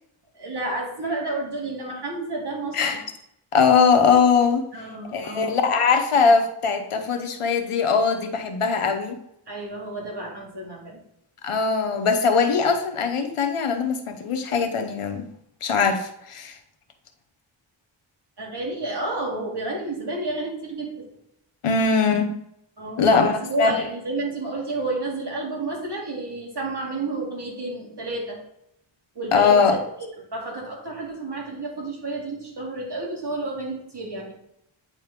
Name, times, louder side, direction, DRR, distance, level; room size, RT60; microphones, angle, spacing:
voice 1, 0.3-3.0 4.7-5.6 9.5-11.0 18.4-21.1 22.8-23.1 23.4-28.4 29.1-29.8 30.3-34.3, right 2 dB, 55° right, -2 dB, 2.4 m, -30 dB
voice 2, 3.5-4.6 5.1-9.2 11.4-15.3 15.6-16.6 21.6-22.4 23.0-23.7 29.3-29.7, left 5 dB, 85° left, 6 dB, 1.1 m, -21 dB
9.0 x 4.3 x 3.6 m, 0.77 s
cardioid pair, 55°, 50 cm